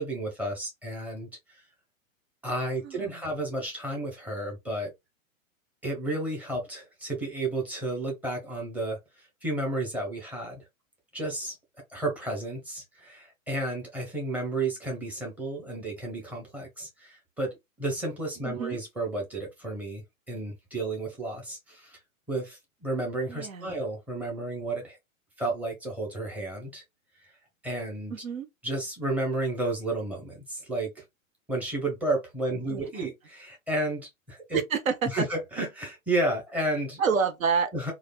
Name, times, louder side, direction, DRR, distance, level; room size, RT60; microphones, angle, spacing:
voice 1, 0.0-1.6 2.4-4.9 5.8-9.0 9.4-10.6 11.1-11.6 11.9-22.0 22.3-25.0 25.4-26.8 27.6-28.1 28.6-31.0 31.5-34.6 35.1-37.0 37.7-37.9, right 2 dB, 5° right, 0.9 m, -32 dB
voice 2, 2.8-3.2 18.4-18.8 23.3-23.7 28.1-28.5 32.7-33.1 34.5-35.1 37.0-37.7, right 6 dB, 75° right, 0.7 m, -28 dB
3.2 x 2.4 x 2.2 m
figure-of-eight pair, 105°, 41 cm